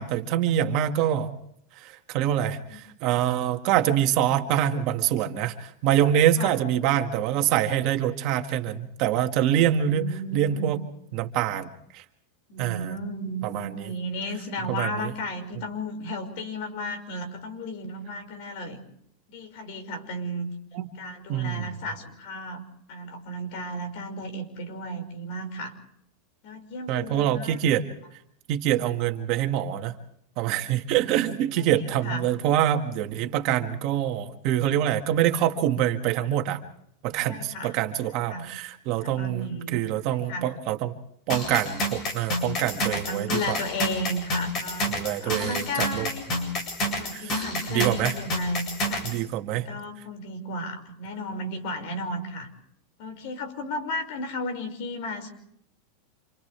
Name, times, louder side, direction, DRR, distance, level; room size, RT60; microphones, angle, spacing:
voice 1, 0.0-1.4 1.8-10.8 11.1-12.0 12.6-13.0 13.4-13.9 14.7-14.9 20.7-20.9 21.3-21.7 26.9-27.8 28.5-29.9 30.4-36.6 37.0-40.9 41.3-43.6 44.9-46.1 47.1-47.4 47.7-48.1 49.0-49.7, right 11 dB, 45° right, 5 dB, 1.9 m, -25 dB
voice 2, 9.8-10.7 12.5-18.8 19.3-20.5 21.0-22.6 22.9-25.7 26.4-27.8 30.9-31.3 31.8-32.3 37.2-37.8 38.3-38.5 39.0-39.8 40.1-40.5 42.8-44.9 45.2-46.2 46.9-49.1 49.5-52.5 53.0-55.3, equal, 55° left, 5 dB, 5.7 m, -34 dB
sound 1, 41.3-49.2, left 1 dB, 30° left, 7.7 m, -29 dB
28.5 x 28.0 x 3.4 m, 0.71 s
supercardioid pair, 155°, 0 cm